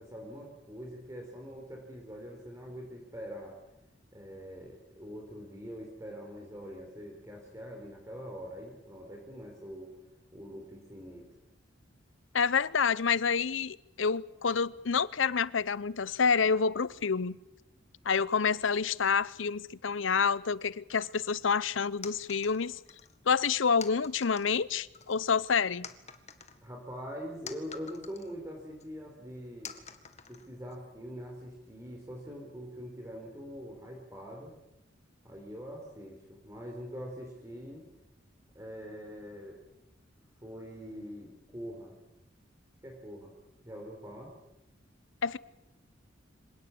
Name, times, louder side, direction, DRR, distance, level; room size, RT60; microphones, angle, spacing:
voice 1, 0.0-3.6 4.1-9.9 10.3-11.3 26.6-29.7 30.3-34.5 35.2-37.8 38.5-39.6 40.4-41.9 42.8-43.3 43.6-44.3, equal, 15° right, 4.5 m, -44 dB
voice 2, 12.3-17.4 18.0-22.8 23.3-25.9 45.2-45.4, left 5 dB, 75° left, 0.8 m, -28 dB
sound 1, 21.0-21.4 22.0-23.2 23.8-24.6 24.9-25.5 25.8-28.4 28.8-28.9 29.6-30.8, left 7 dB, 35° left, 1.9 m, -48 dB
26.0 x 18.0 x 8.6 m
head